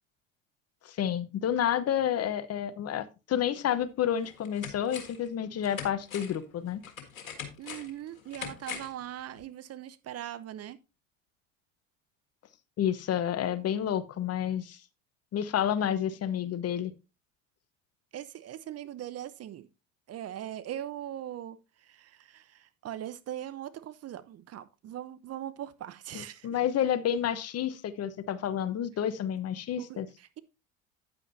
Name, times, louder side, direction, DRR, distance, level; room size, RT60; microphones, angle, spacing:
voice 1, 0.8-6.8 12.8-14.8 15.3-16.9 26.1-30.1, left 10 dB, 40° left, 1.0 m, -30 dB
sound 1, 3.6-3.7 4.2-5.3 5.6-9.0 9.4-9.5, left 7 dB, 90° left, 1.7 m, -42 dB
voice 2, 7.6-10.8 18.1-19.7 20.1-26.5 29.8-30.4, right 11 dB, 40° right, 0.8 m, -40 dB
9.7 x 8.9 x 2.7 m
hypercardioid pair, 75°, 40 cm